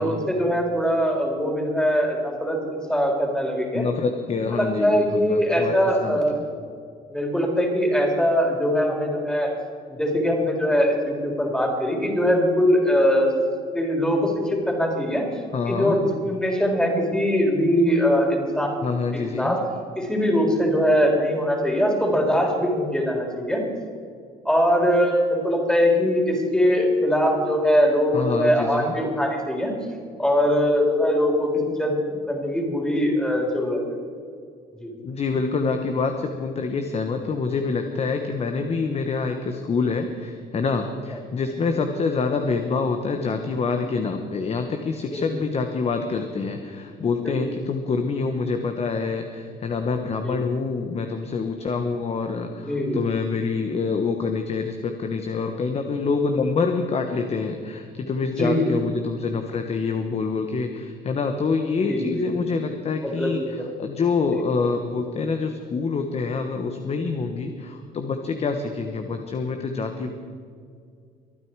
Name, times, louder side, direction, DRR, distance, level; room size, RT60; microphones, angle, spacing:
voice 1, 0.0-3.8 4.5-6.4 7.1-9.5 9.9-13.3 13.7-15.2 15.7-18.7 19.3-19.6 20.0-23.7 24.5-29.7 30.2-33.8 34.7-34.9 45.1-45.2 47.2-47.4 50.2-50.4 52.6-53.0 58.3-58.7 61.9-62.2 63.0-63.7 64.3-64.4, equal, 5° left, 0 dB, 3.8 m, -22 dB
voice 2, 3.7-5.7 6.0-6.2 15.5-16.0 18.8-19.6 28.1-28.9 35.0-70.1, left 4 dB, 40° left, 6 dB, 1.1 m, -26 dB
24.0 x 9.3 x 4.7 m, 2.3 s
cardioid pair, 110°, 17 cm